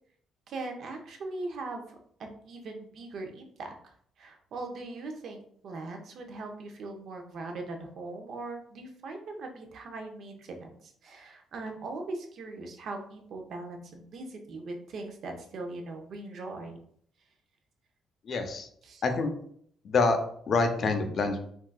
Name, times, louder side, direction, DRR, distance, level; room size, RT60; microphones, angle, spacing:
voice 1, 0.5-16.8 18.8-19.0, right 2 dB, 65° right, 4 dB, 0.6 m, -40 dB
voice 2, 18.2-18.7 19.0-19.3 19.8-20.2 20.5-21.4, left 3 dB, 55° left, 6 dB, 0.5 m, -26 dB
3.7 x 2.4 x 2.3 m, 0.64 s
cardioid pair, 90°, 0 cm